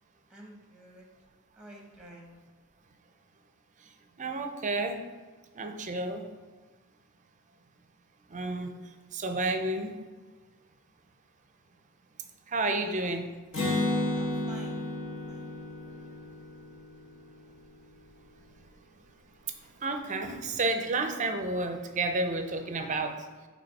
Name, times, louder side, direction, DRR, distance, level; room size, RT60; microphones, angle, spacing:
voice 1, 0.3-1.0 1.6-2.4 12.8-13.1 14.1-14.8 15.3-15.5, right 1 dB, 5° right, 0 dB, 1.0 m, -49 dB
voice 2, 4.2-5.0 5.5-6.3 8.3-8.7 9.1-10.0 12.5-13.3 19.8-23.3, right 2 dB, 35° right, 6 dB, 0.6 m, -31 dB
Acoustic guitar, 13.5-17.2, left 1 dB, 55° left, 1.7 m, -32 dB
8.6 x 3.2 x 4.1 m, 1.4 s
head